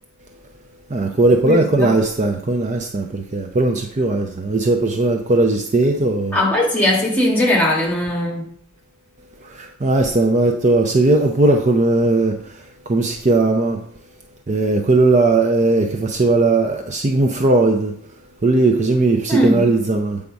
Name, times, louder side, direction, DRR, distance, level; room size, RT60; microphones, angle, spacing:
voice 1, 0.9-6.4 9.4-13.8 14.5-17.9 18.4-20.2, right 2 dB, 35° right, 0.5 m, -18 dB
voice 2, 1.4-1.9 6.3-8.5 19.3-19.7, left 1 dB, 10° left, 1.5 m, -19 dB
8.3 x 3.5 x 5.2 m
head